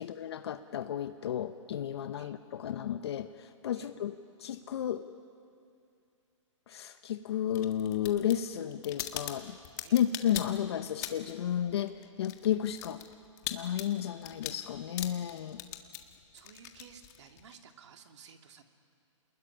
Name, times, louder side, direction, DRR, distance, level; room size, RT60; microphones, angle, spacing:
voice 1, 0.0-5.0 6.7-9.6 9.9-13.0 13.5-15.6, left 10 dB, 55° left, 9 dB, 1.0 m, -32 dB
sound 1, 7.5-11.4 11.7-17.5, left 14 dB, 35° left, 1.7 m, -41 dB
voice 2, 16.3-18.6, right 7 dB, 60° right, 5 dB, 2.5 m, -55 dB
28.0 x 20.5 x 10.0 m, 2.4 s
hypercardioid pair, 155°, 16 cm